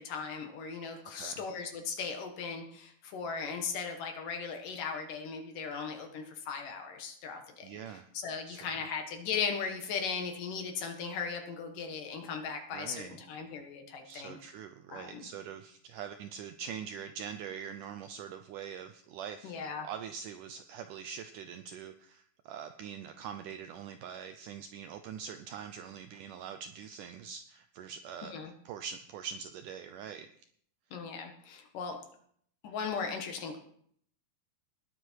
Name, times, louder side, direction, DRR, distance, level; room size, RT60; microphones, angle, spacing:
voice 1, 0.0-7.7 8.1-14.4 14.9-15.3 19.4-19.9 28.3-28.5 30.9-32.0 32.6-33.6, left 6 dB, 65° left, 4 dB, 3.0 m, -37 dB
voice 2, 7.6-8.1 8.5-8.7 12.7-13.2 14.1-28.4 28.7-30.3, right 8 dB, 80° right, 8 dB, 1.9 m, -43 dB
19.5 x 8.1 x 4.6 m, 0.64 s
omnidirectional pair, 4.4 m